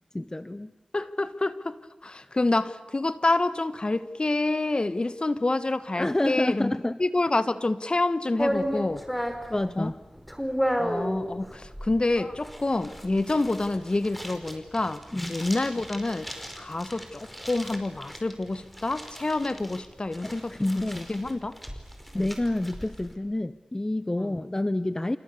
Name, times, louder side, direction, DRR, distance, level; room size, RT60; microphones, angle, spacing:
voice 1, 0.1-0.7 2.2-2.3 6.0-7.0 9.2-10.0 15.1-15.4 20.2-21.1 22.1-25.2, left 1 dB, 25° left, 0.8 m, -28 dB
voice 2, 0.9-1.7 2.0-6.7 7.0-9.0 9.8-9.9 10.8-15.0 15.3-16.3 16.6-20.5 21.0-21.6 22.1-22.3 24.2-24.4, left 2 dB, 45° left, 1.5 m, -27 dB
sound 1, 8.4-23.1, equal, ahead, 4.7 m, -34 dB
28.5 x 28.0 x 6.9 m
cardioid pair, 40°, 2 cm